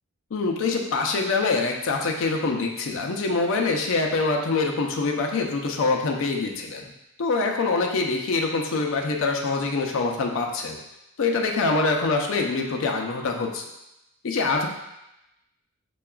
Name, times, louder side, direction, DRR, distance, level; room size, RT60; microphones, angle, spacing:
voice 1, 0.3-6.8 7.2-10.8 11.2-13.7 14.2-14.7, left 3 dB, 60° left, 2 dB, 0.5 m, -24 dB
5.6 x 2.3 x 2.3 m, 0.90 s
head